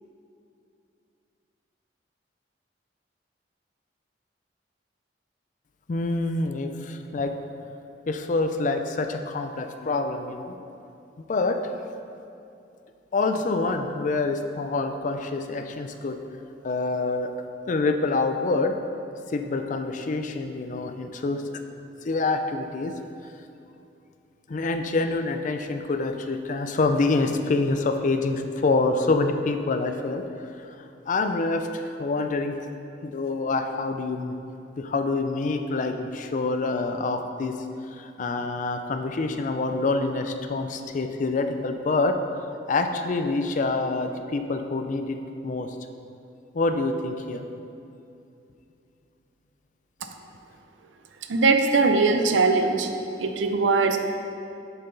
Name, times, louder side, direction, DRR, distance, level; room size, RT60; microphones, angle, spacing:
voice 1, 5.9-7.3 8.1-10.6 11.3-11.6 13.1-16.2 16.6-17.3 17.7-18.8 19.3-21.6 22.0-22.9 24.5-30.2 30.6-32.6 33.0-34.3 34.8-37.6 37.9-42.2 42.7-45.2 45.4-45.8 46.5-47.5, left 3 dB, 45° left, 6 dB, 0.4 m, -26 dB
voice 2, 51.3-52.9 53.2-54.0, right 4 dB, 90° right, 6 dB, 0.5 m, -20 dB
6.8 x 5.7 x 3.9 m, 2.7 s
head